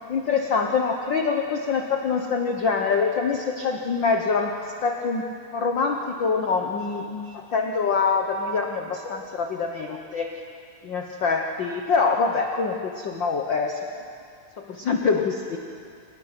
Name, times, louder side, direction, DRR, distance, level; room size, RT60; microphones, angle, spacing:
voice 1, 0.1-4.6 4.8-5.3 5.5-10.3 10.8-13.9 14.6-15.6, left 5 dB, 60° left, 3 dB, 1.2 m, -25 dB
26.0 x 18.5 x 6.0 m, 2.4 s
omnidirectional pair, 3.4 m